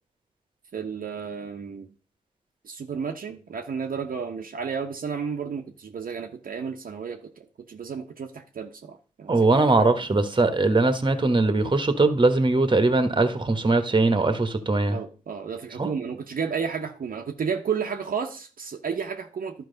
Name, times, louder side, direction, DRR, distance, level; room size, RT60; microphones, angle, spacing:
voice 1, 0.7-1.9 2.6-9.4 14.9-19.7, right 6 dB, 60° right, 3 dB, 0.9 m, -32 dB
voice 2, 9.3-15.0 15.8-15.9, right 3 dB, 30° right, 9 dB, 1.2 m, -21 dB
11.5 x 4.6 x 3.9 m, 0.36 s
supercardioid pair, 40°, 17 cm